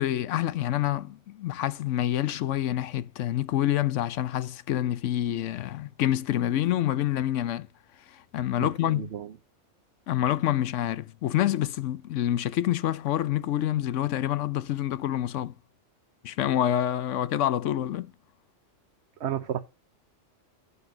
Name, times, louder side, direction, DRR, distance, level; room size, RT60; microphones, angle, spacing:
voice 1, 0.0-7.7 8.1-9.1 10.1-15.5 16.2-18.1, left 12 dB, 80° left, 0.9 m, -27 dB
voice 2, 8.6-9.3 19.2-19.6, right 10 dB, 65° right, 1.0 m, -32 dB
11.0 x 8.2 x 2.7 m
omnidirectional pair, 1.3 m